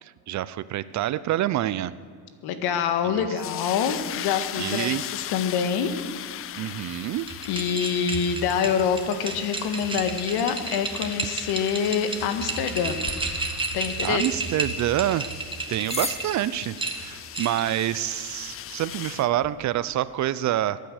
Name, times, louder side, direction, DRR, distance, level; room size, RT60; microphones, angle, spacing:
voice 1, 0.0-2.0 3.1-3.2 4.6-5.0 6.6-7.3 14.0-15.3 15.7-20.8, right 13 dB, 45° right, 17 dB, 0.5 m, -27 dB
voice 2, 2.4-5.9 7.4-13.0 13.7-14.3, left 7 dB, 70° left, 9 dB, 1.7 m, -26 dB
sound 1, 3.4-19.3, left 12 dB, 35° left, 0.4 m, -39 dB
sound 2, 7.2-16.3 16.8-17.7, right 3 dB, 10° right, 1.6 m, -32 dB
sound 3, 13.0-19.5, left 2 dB, 15° left, 1.6 m, -41 dB
23.0 x 9.3 x 6.5 m, 2.1 s
cardioid pair, 135°, 40 cm